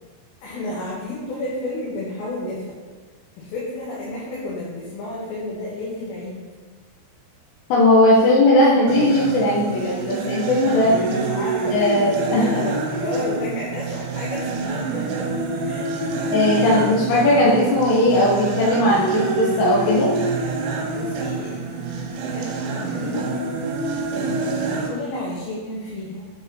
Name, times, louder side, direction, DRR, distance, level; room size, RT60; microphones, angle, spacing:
voice 1, 0.4-2.8 3.4-6.4 11.0-15.1 15.6-16.2 16.6-16.9 20.9-23.3 24.1-26.3, left 2 dB, 70° left, -6 dB, 2.9 m, -31 dB
voice 2, 7.7-10.9 11.7-12.5 16.3-20.1, left 1 dB, 90° left, -6 dB, 3.3 m, -18 dB
sound 1, 8.9-24.9, right 3 dB, 75° right, 3.0 m, -26 dB
8.3 x 5.2 x 4.1 m, 1.4 s
omnidirectional pair, 5.0 m